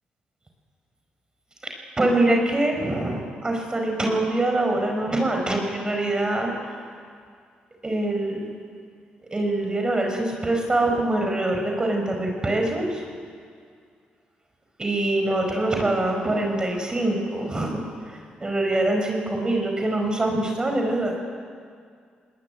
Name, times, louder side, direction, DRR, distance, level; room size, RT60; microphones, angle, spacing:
voice 1, 1.6-6.9 7.8-8.5 9.3-13.0 14.8-21.1, right 2 dB, 25° right, 2 dB, 5.0 m, -24 dB
20.5 x 18.5 x 10.0 m, 2.1 s
supercardioid pair, 60°, 3 cm